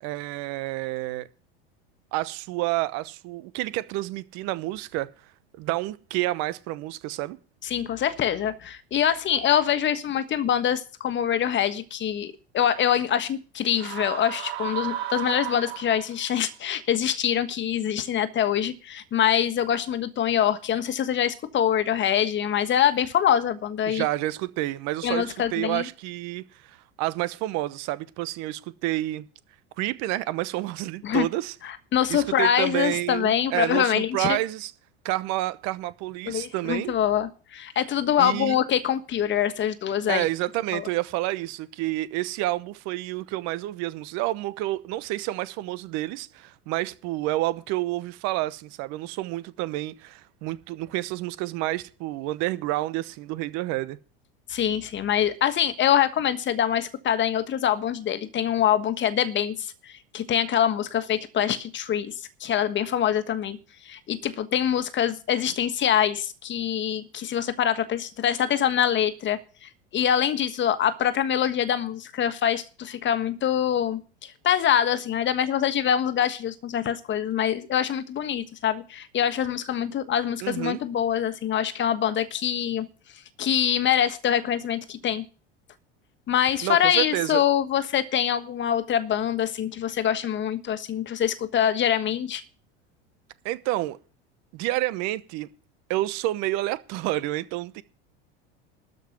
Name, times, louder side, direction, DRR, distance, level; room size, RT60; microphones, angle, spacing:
voice 1, 0.0-1.3 2.1-5.1 5.6-7.4 23.9-29.3 29.8-31.5 32.1-34.7 35.0-36.9 38.2-38.6 40.1-54.0 80.4-80.8 86.6-87.4 93.4-94.0 94.5-95.5 95.9-97.8, right 17 dB, 55° right, 1.0 m, -29 dB
voice 2, 7.6-24.0 25.0-25.9 31.0-31.3 31.6-34.4 36.3-40.2 40.7-40.8 54.5-62.1 62.4-63.6 63.8-82.9 83.4-85.2 86.3-92.4, left 9 dB, 35° left, 1.4 m, -24 dB
sound 1, 13.7-16.3, right 11 dB, 75° right, 2.7 m, -33 dB
13.0 x 5.4 x 9.1 m
hypercardioid pair, 90°, 32 cm